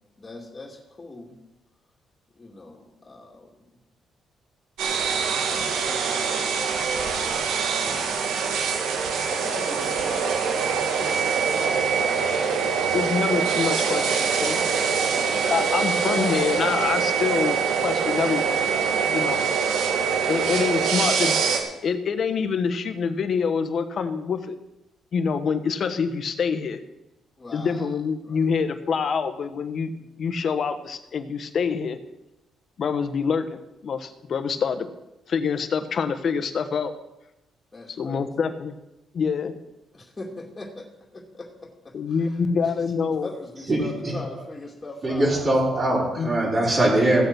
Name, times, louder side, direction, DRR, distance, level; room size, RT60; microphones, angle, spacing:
voice 1, 0.2-1.3 2.4-3.6 5.5-8.3 9.3-11.5 11.9-12.7 19.9-20.3 27.4-27.9 28.2-28.4 37.7-38.3 39.9-40.9 41.1-41.5 41.8-41.9 42.8-42.9 43.2-45.3, left 2 dB, 25° left, -1 dB, 2.6 m, -41 dB
sound 1, 4.8-21.6, right 6 dB, 85° right, 2.0 m, -24 dB
voice 2, 12.6-14.6 15.5-18.7 19.1-19.4 19.7-19.8 20.3-21.4 21.8-24.6 25.1-26.8 27.5-29.9 30.2-32.0 32.8-34.9 35.3-36.9 38.0-38.7 39.1-39.5 41.9-43.3 46.2-46.3, left 6 dB, 55° left, 9 dB, 1.3 m, -26 dB
voice 3, 43.7-44.4 45.0-47.2, right 1 dB, 35° right, -6 dB, 5.3 m, -22 dB
15.5 x 8.0 x 6.1 m, 0.94 s
cardioid pair, 90°, 0 cm